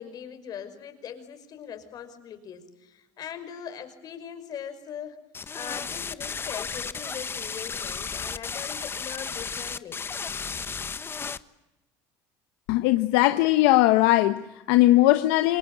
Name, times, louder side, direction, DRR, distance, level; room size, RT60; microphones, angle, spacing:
voice 1, 0.0-5.2 5.5-10.0, left 8 dB, 50° left, 5.6 m, -40 dB
sound 1, 5.3-11.4, left 5 dB, 25° left, 1.2 m, -34 dB
voice 2, 12.7-15.6, left 17 dB, 75° left, 1.1 m, -20 dB
28.0 x 21.5 x 9.9 m
supercardioid pair, 95°, 9 cm